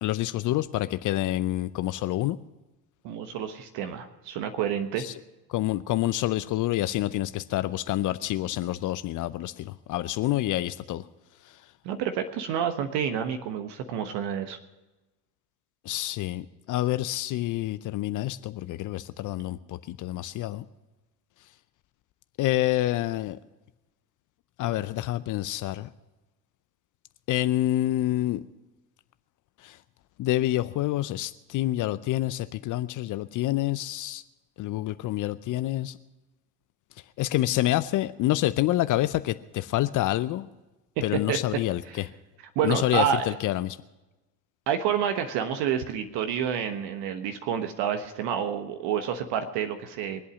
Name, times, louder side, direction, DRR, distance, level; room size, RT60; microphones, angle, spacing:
voice 1, 0.0-2.4 5.0-5.1 5.5-11.0 11.4-11.6 15.8-20.6 22.4-23.4 24.6-25.9 27.3-28.4 29.6-29.8 30.2-34.2 34.6-36.0 37.2-40.5 41.0-42.1 42.6-43.8, left 15 dB, 40° left, 14 dB, 0.6 m, -27 dB
voice 2, 3.0-5.0 11.8-14.6 41.3-41.4 41.9-42.0 42.5-43.2 44.7-50.2, right 8 dB, 55° right, 7 dB, 1.3 m, -29 dB
23.5 x 8.4 x 6.2 m, 1.1 s
hypercardioid pair, 75°, 49 cm